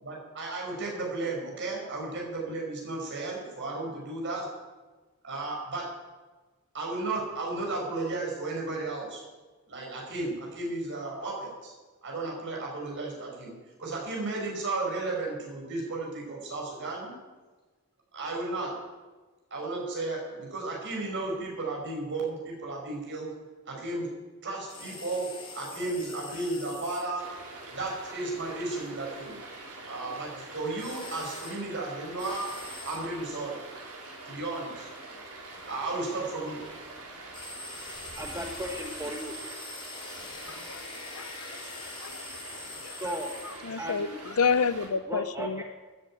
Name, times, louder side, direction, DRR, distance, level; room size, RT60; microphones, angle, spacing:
voice 1, 0.0-4.5 5.2-5.9 6.7-9.2 9.7-11.7 12.0-13.5 13.8-17.1 18.1-18.7 19.5-23.3 23.7-24.1 24.4-25.3 25.5-27.2 27.7-29.4 29.9-32.5 32.8-33.6 34.2-34.9 35.7-36.7, right 2 dB, 55° right, -2 dB, 6.3 m, -34 dB
sound 1, 24.7-27.0 30.8-31.6 32.2-33.0 37.3-43.6, left 3 dB, 25° left, 3.7 m, -43 dB
Stream, 27.2-44.9, right 2 dB, 85° right, 4.7 m, -45 dB
voice 2, 38.1-39.4 42.9-43.3 43.8-44.2 45.0-45.6, equal, 15° right, 2 dB, 1.2 m, -35 dB
voice 3, 40.5-40.8 41.2-41.3 42.0-42.1 43.7-44.1 44.4-45.5, left 5 dB, 75° left, 15 dB, 0.6 m, -27 dB
14.0 x 10.5 x 9.2 m, 1.3 s
head